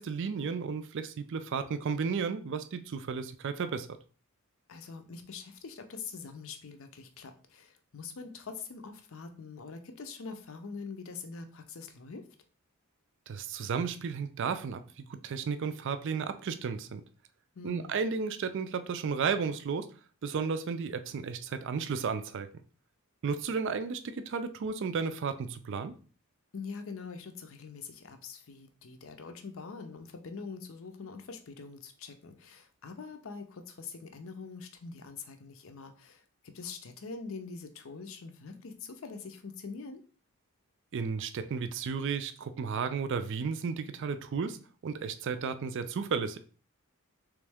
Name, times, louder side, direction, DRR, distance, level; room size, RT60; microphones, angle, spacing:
voice 1, 0.0-3.9 13.3-17.0 17.6-19.9 20.2-22.5 23.2-26.0 40.9-46.4, right 5 dB, 55° right, 10 dB, 0.4 m, -33 dB
voice 2, 4.7-12.3 17.5-18.0 26.5-40.0, left 4 dB, 60° left, 7 dB, 0.6 m, -44 dB
3.6 x 3.1 x 3.4 m, 0.40 s
head